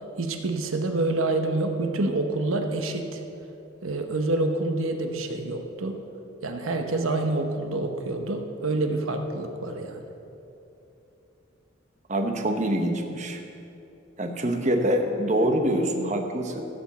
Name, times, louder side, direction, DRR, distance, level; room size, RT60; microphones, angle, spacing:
voice 1, 0.2-3.2 3.8-6.0 6.4-10.0, right 2 dB, 85° right, 5 dB, 0.9 m, -27 dB
voice 2, 12.1-13.4 14.2-16.6, right 1 dB, 35° right, 4 dB, 0.9 m, -25 dB
15.5 x 5.2 x 7.1 m, 2.8 s
head